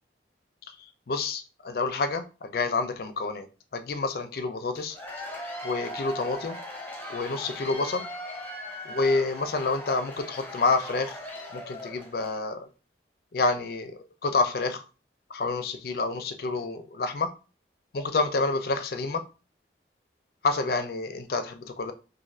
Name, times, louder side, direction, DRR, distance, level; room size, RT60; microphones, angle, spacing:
voice 1, 1.1-3.5 3.7-5.0 5.6-6.6 7.1-8.1 8.9-11.2 11.5-12.7 13.3-14.8 15.3-17.3 17.9-19.2 20.4-21.9, left 3 dB, 55° left, 0.4 m, -28 dB
Cheering / Applause / Crowd, 4.8-12.4, left 1 dB, 10° left, 0.6 m, -39 dB
2.5 x 2.4 x 4.1 m
head